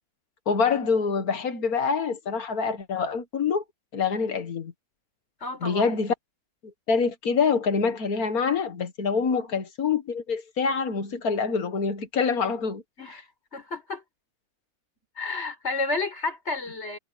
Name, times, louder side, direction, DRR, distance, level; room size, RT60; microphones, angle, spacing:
voice 1, 0.5-3.6 3.9-4.7 5.6-6.1 6.9-12.8, left 5 dB, 85° left, 2.1 m, -25 dB
voice 2, 5.4-5.9 9.3-9.5 13.0-13.2 13.5-14.0 15.2-17.0, left 3 dB, 50° left, 5.4 m, -31 dB
omnidirectional pair, 1.5 m